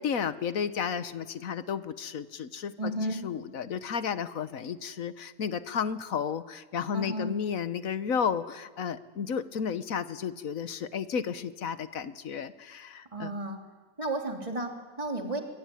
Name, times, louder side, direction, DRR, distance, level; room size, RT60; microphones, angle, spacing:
voice 1, 0.0-13.3, left 7 dB, 70° left, 13 dB, 1.5 m, -33 dB
voice 2, 2.8-3.2 6.9-7.4 13.1-13.6 14.0-15.4, right 1 dB, 20° right, 2 dB, 3.1 m, -33 dB
24.0 x 23.0 x 10.0 m, 1.4 s
omnidirectional pair, 1.5 m